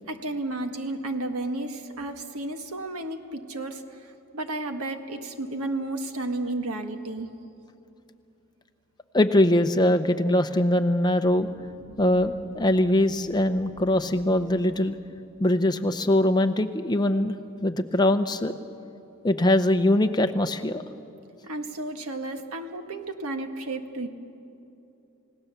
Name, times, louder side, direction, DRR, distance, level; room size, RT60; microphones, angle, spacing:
voice 1, 0.1-3.8 4.3-7.3 21.4-24.1, right 2 dB, 85° right, 6 dB, 1.5 m, -32 dB
voice 2, 9.1-11.5 12.0-15.0 15.4-17.4 17.6-18.5 19.2-20.8, left 1 dB, 20° left, 8 dB, 0.7 m, -22 dB
sound 1, 11.3-18.1, right 1 dB, 60° right, 3.6 m, -48 dB
29.5 x 17.0 x 6.9 m, 2.8 s
head